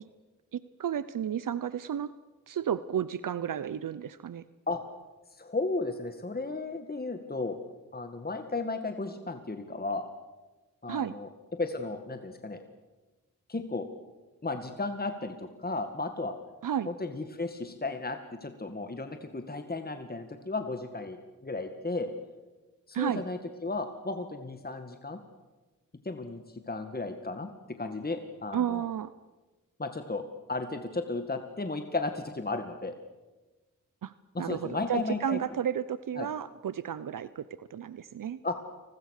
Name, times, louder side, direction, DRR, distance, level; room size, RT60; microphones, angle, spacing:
voice 1, 0.5-2.1 2.5-4.4 10.9-11.1 16.6-16.9 22.9-23.2 28.5-29.1 34.0-34.1 34.4-38.4, right 9 dB, 75° right, 16 dB, 0.8 m, -32 dB
voice 2, 5.3-7.6 7.9-10.1 10.8-11.3 11.6-12.6 13.5-13.9 14.4-16.3 16.9-22.1 22.9-25.2 26.0-28.9 29.8-32.9 34.3-35.4 36.2-36.3 38.4-38.6, left 3 dB, 30° left, 7 dB, 2.0 m, -34 dB
29.0 x 21.0 x 6.6 m, 1.2 s
cardioid pair, 55°, 33 cm